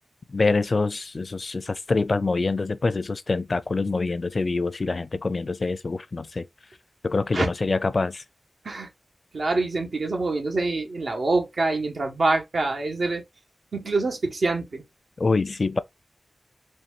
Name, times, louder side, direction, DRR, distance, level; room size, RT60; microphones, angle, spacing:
voice 1, 0.3-6.5 7.0-8.2 15.2-15.8, left 3 dB, 55° left, 0.4 m, -25 dB
voice 2, 9.3-13.2 13.7-14.8, right 3 dB, 80° right, 1.3 m, -25 dB
4.4 x 3.1 x 2.4 m
wide cardioid pair, 80°, 0 cm